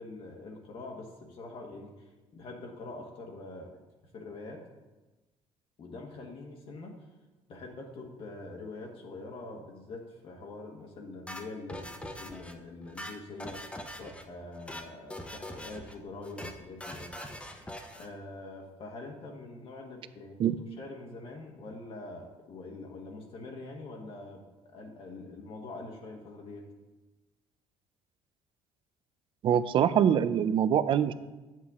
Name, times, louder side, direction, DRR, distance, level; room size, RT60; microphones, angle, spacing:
voice 1, 0.0-3.7 4.1-4.7 5.8-7.1 7.5-13.7 14.0-17.1 18.0-20.4 20.8-26.7, left 2 dB, 55° left, 0 dB, 1.3 m, -44 dB
sound 1, 11.3-12.5 12.8-14.2 14.5-14.9 15.1-15.9 16.2-16.5 16.8-18.1, left 1 dB, 10° left, 0.9 m, -42 dB
voice 2, 29.4-31.1, right 9 dB, 50° right, 14 dB, 0.5 m, -24 dB
9.5 x 7.5 x 3.6 m, 1.1 s
cardioid pair, 110°, 11 cm